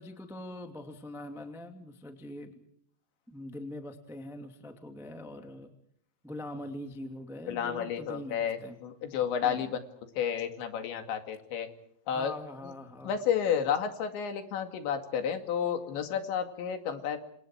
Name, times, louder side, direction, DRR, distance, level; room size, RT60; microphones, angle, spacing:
voice 1, 0.0-2.6 3.3-5.7 6.2-8.8 9.4-9.7 12.1-13.2, left 1 dB, ahead, 5 dB, 0.5 m, -43 dB
voice 2, 7.5-9.8 10.2-11.7 12.1-12.3 13.0-17.2, left 8 dB, 70° left, 7 dB, 4.5 m, -31 dB
28.5 x 27.0 x 4.7 m, 0.70 s
omnidirectional pair, 5.4 m